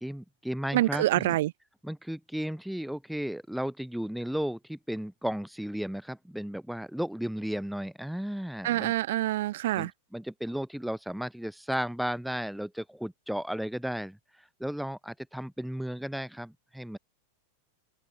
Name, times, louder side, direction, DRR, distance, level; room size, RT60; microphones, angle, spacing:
voice 1, 0.0-1.4 1.8-8.9 9.8-17.0, equal, ahead, 3.1 m, -34 dB
voice 2, 0.7-1.5 8.6-9.9, right 15 dB, 55° right, 4.6 m, -26 dB
figure-of-eight pair, 90°, 0 cm